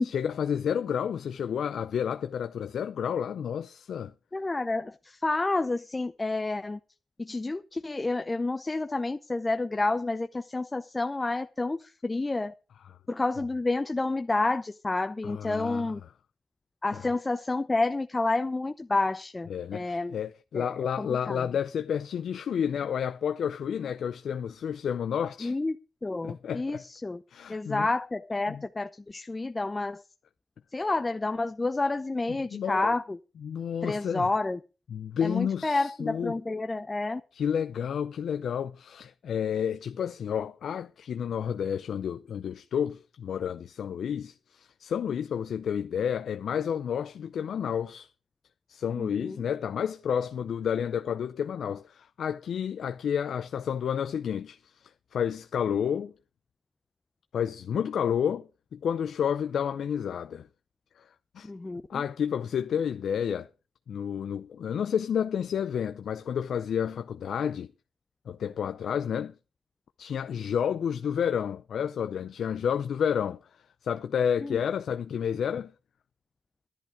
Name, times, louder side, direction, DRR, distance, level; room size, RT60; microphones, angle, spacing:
voice 1, 0.0-4.1 12.8-13.0 15.2-15.9 16.9-17.1 19.5-25.6 26.2-26.9 27.3-27.9 28.5-28.6 32.3-33.0 33.4-34.3 34.9-36.4 37.3-48.1 48.7-56.1 57.3-60.5 61.0-61.1 61.3-61.5 61.9-63.5 63.9-67.7 68.3-69.3 70.0-73.4 73.8-75.7, left 8 dB, 75° left, 0.5 m, -30 dB
voice 2, 4.3-6.8 7.2-12.5 13.1-16.0 16.8-20.1 20.5-21.4 25.4-25.8 26.0-27.2 27.5-30.0 30.7-33.2 33.8-34.6 35.2-37.2 49.0-49.4 61.4-62.0 74.4-74.6, left 2 dB, 25° left, 0.6 m, -29 dB
11.0 x 11.0 x 4.9 m
cardioid pair, 70°, 0 cm